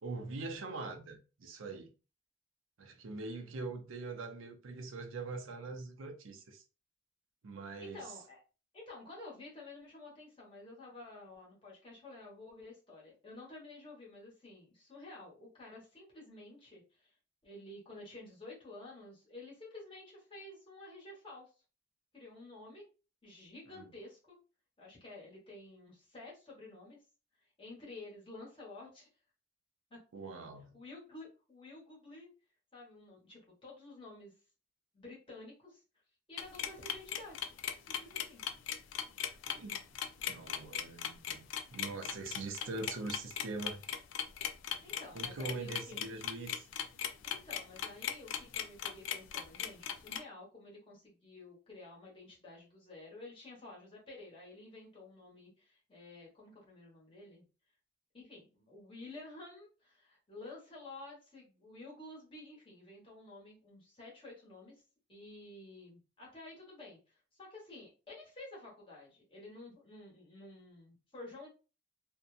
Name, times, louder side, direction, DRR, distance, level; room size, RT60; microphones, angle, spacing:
voice 1, 0.0-1.9 2.8-6.6 7.4-8.1 23.7-23.9 30.1-30.8 39.2-39.8 40.2-43.8 45.1-46.7, right 3 dB, 85° right, 0.6 m, -43 dB
voice 2, 7.8-8.4 8.7-17.1 17.4-21.5 22.1-22.8 23.2-24.4 24.8-27.0 27.6-29.1 29.9-30.0 30.7-32.3 32.7-34.3 34.9-35.8 36.3-37.5 37.9-38.4 44.8-46.0 47.2-57.4 58.1-64.8 65.1-71.5, left 2 dB, 25° left, 1.2 m, -51 dB
sound 1, 36.4-50.2, left 9 dB, 75° left, 0.3 m, -38 dB
2.7 x 2.2 x 2.4 m
head